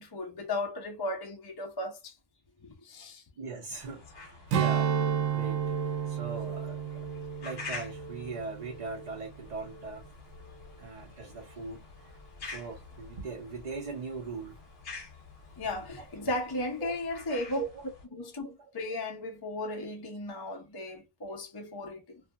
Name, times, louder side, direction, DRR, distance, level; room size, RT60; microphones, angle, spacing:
voice 1, 0.0-2.1 2.6-3.2 15.6-17.6 18.1-22.2, left 1 dB, 30° left, 0.4 m, -35 dB
voice 2, 3.4-4.9 5.3-5.8 6.1-7.1 7.4-10.1 10.8-12.1 12.4-14.6 15.9-16.1 16.8-16.9 17.5-17.8, right 4 dB, 45° right, 0.5 m, -40 dB
sound 1, 3.7-18.1, left 4 dB, 55° left, 1.0 m, -48 dB
Strum, 4.5-9.2 9.6-9.8, right 8 dB, 75° right, 0.9 m, -31 dB
2.7 x 2.4 x 2.3 m
omnidirectional pair, 1.3 m